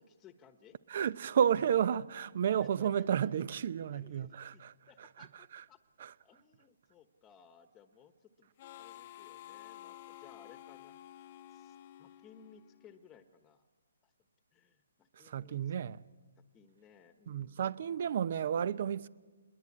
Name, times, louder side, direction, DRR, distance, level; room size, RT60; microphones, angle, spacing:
voice 1, 0.0-0.8 2.5-3.5 3.9-13.6 14.0-14.1 14.5-15.7 16.4-17.9, left 7 dB, 15° left, 1.2 m, -60 dB
voice 2, 0.9-4.7 5.5-5.6 6.0-6.1 15.2-16.0 17.3-19.1, right 8 dB, 50° right, 0.9 m, -31 dB
Harmonica, 8.6-13.1, left 13 dB, 40° left, 1.0 m, -52 dB
27.5 x 22.0 x 8.7 m
hypercardioid pair, 150°, 0 cm